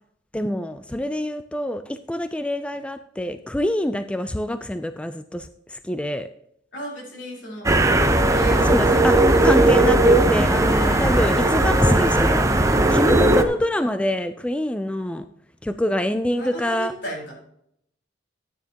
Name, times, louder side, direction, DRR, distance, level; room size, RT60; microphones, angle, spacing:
voice 1, 0.3-6.3 8.6-15.3 15.6-16.9, left 1 dB, 5° left, 10 dB, 0.3 m, -26 dB
voice 2, 6.7-7.7 8.3-10.0 10.4-11.6 16.4-17.3, equal, 70° left, -3 dB, 4.4 m, -35 dB
sound 1, 7.6-13.4, right 2 dB, 15° right, 0.7 m, -17 dB
13.0 x 9.4 x 2.9 m, 0.72 s
head